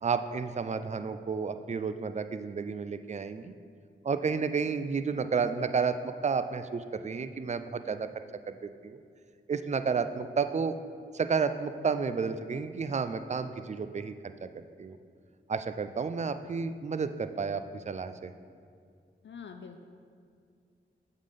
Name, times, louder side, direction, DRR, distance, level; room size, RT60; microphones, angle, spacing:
voice 1, 0.0-3.5 4.0-8.1 8.5-9.0 9.5-10.8 11.1-14.1 14.4-15.0 15.5-18.3, right 5 dB, 35° right, 10 dB, 0.4 m, -31 dB
voice 2, 19.2-19.8, left 6 dB, 60° left, 5 dB, 0.4 m, -45 dB
7.3 x 3.7 x 5.1 m, 2.2 s
cardioid pair, 40°, 21 cm